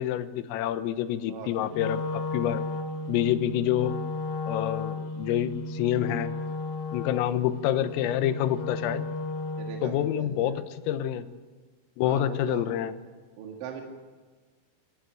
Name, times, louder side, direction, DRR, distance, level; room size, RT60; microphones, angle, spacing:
voice 1, 0.0-2.7 3.1-4.0 4.5-6.3 6.9-9.1 9.8-11.3 12.0-12.9, left 11 dB, 85° left, 11 dB, 3.7 m, -27 dB
voice 2, 1.2-1.7 9.6-10.6 12.0-12.7 13.4-13.8, right 6 dB, 70° right, 2 dB, 4.4 m, -40 dB
Wind instrument woodwind instrument, 1.7-9.9, left 2 dB, 65° left, 3.7 m, -34 dB
26.5 x 15.5 x 9.1 m, 1.4 s
omnidirectional pair, 5.9 m